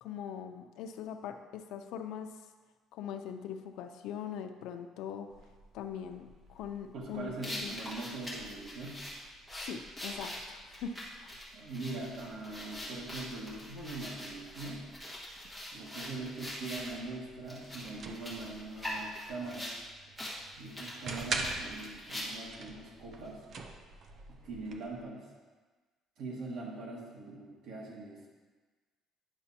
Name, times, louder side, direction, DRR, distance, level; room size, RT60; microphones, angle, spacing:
voice 1, 0.0-2.3 2.9-5.3 5.7-7.8 9.6-11.4, left 8 dB, 75° left, 7 dB, 0.5 m, -42 dB
sound 1, 5.3-25.0, right 3 dB, 40° right, 0.5 m, -47 dB
voice 2, 6.9-9.0 11.5-14.9 15.7-19.7 20.6-23.4 24.3-25.3 26.2-28.3, right 3 dB, 60° right, -3 dB, 1.6 m, -42 dB
sound 2, 7.4-17.0 17.5-19.8 20.2-20.4 20.7-22.6, left 1 dB, 5° right, 1.4 m, -43 dB
9.9 x 6.0 x 2.8 m, 1.4 s
cardioid pair, 165°, 0 cm